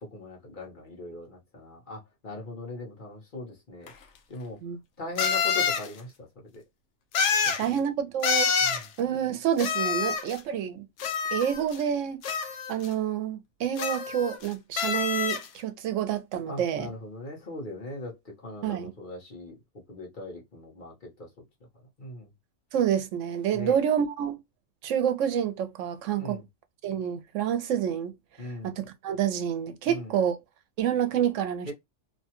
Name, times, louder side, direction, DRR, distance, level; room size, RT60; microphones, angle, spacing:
voice 1, 0.0-3.9 4.3-4.6 5.0-6.3 6.5-6.6 7.4-7.8 8.6-8.8 16.5-19.6 19.9-21.3 22.0-22.3 23.5-23.8 26.2-26.5 28.4-28.8 29.9-30.1 31.7-31.8, left 2 dB, 45° left, 1.2 m, -40 dB
sound 1, 3.9-4.0 5.2-5.9 7.1-7.7 8.2-8.9 9.6-10.4 11.0-11.8 12.2-12.9 13.8-14.5 14.8-15.5, left 6 dB, 75° left, 0.9 m, -27 dB
voice 2, 7.6-8.5 9.0-10.8 11.3-12.2 12.7-16.9 18.6-18.9 22.7-24.4 24.8-26.4 26.8-28.1 28.4-30.4 30.8-31.7, right 9 dB, 90° right, 1.0 m, -28 dB
2.9 x 2.2 x 2.8 m
omnidirectional pair, 1.2 m